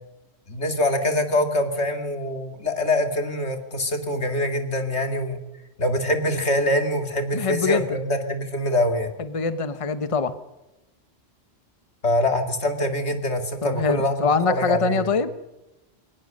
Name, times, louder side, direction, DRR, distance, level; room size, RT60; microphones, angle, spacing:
voice 1, 0.5-5.4 5.8-9.1 12.0-15.1, left 1 dB, 85° left, 6 dB, 2.7 m, -24 dB
voice 2, 7.3-8.0 9.2-10.3 13.6-15.3, left 5 dB, 30° left, 12 dB, 1.1 m, -24 dB
21.5 x 19.0 x 6.6 m, 0.98 s
omnidirectional pair, 1.1 m